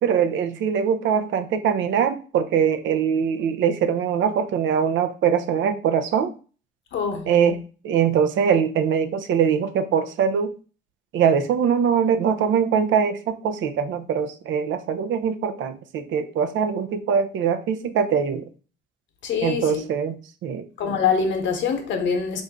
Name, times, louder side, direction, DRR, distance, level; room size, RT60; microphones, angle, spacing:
voice 1, 0.0-6.3 7.3-10.5 11.1-18.4 19.4-20.7, right 7 dB, 75° right, 0.5 m, -22 dB
voice 2, 6.9-7.3 19.2-19.8 20.8-22.4, left 6 dB, 70° left, 0.9 m, -24 dB
3.8 x 2.6 x 3.4 m
cardioid pair, 90°, 20 cm